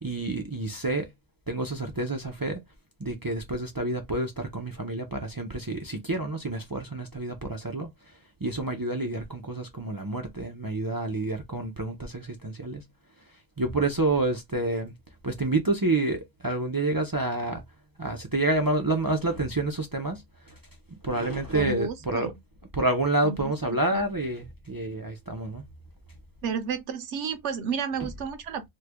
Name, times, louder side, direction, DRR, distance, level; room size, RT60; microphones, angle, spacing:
voice 1, 0.0-1.1 1.5-2.6 3.0-7.9 8.4-12.8 13.6-14.9 15.2-17.6 18.0-20.5 21.0-22.3 22.7-25.7, right 2 dB, 35° right, 0.3 m, -28 dB
voice 2, 21.5-22.4 23.2-23.5 23.9-24.1 26.4-28.7, right 6 dB, 70° right, 1.0 m, -32 dB
3.2 x 2.2 x 3.3 m
omnidirectional pair, 1.3 m